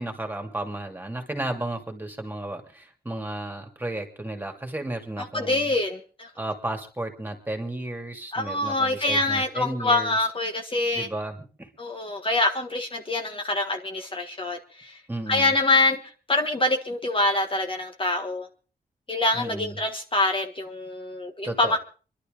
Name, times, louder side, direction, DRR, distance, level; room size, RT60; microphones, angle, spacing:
voice 1, 0.0-5.7 6.4-10.3 10.9-11.7 15.1-15.5 19.3-19.8 21.4-21.8, right 1 dB, 10° right, 4 dB, 2.7 m, -33 dB
voice 2, 5.3-6.3 8.3-11.1 11.8-15.0 15.3-16.0 16.3-18.5 19.1-21.8, left 2 dB, 35° left, 4 dB, 1.6 m, -25 dB
26.0 x 11.5 x 3.9 m, 0.38 s
wide cardioid pair, 125°, 16 cm